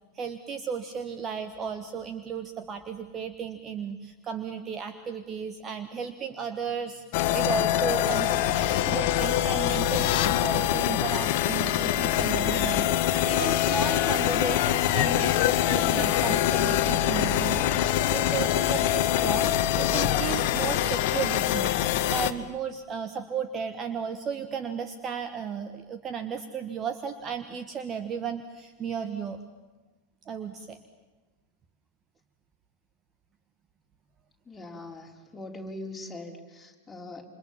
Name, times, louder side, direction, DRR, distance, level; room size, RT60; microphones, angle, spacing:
voice 1, 0.1-8.4 8.9-21.7 22.1-29.4 30.2-30.8, right 6 dB, 25° right, 9 dB, 1.5 m, -34 dB
sound 1, 7.1-22.3, left 12 dB, 45° left, 1.3 m, -24 dB
voice 2, 34.5-37.2, left 2 dB, 10° left, 1 dB, 4.2 m, -41 dB
28.5 x 26.5 x 7.5 m, 1.2 s
figure-of-eight pair, 90°, 0 cm